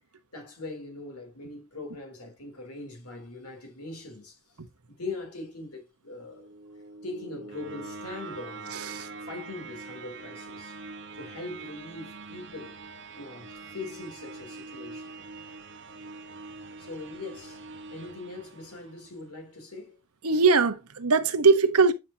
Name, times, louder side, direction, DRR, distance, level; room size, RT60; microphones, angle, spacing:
voice 1, 0.3-4.4 5.0-6.5 7.0-8.8 9.2-10.8 11.2-12.8 13.2-15.2 16.8-20.0, left 2 dB, 90° left, 3.3 m, -41 dB
sound 1, 6.2-19.2, right 3 dB, 55° right, 1.2 m, -43 dB
voice 2, 8.7-9.1 20.2-21.9, right 4 dB, 85° right, 1.1 m, -21 dB
9.3 x 5.6 x 2.8 m
head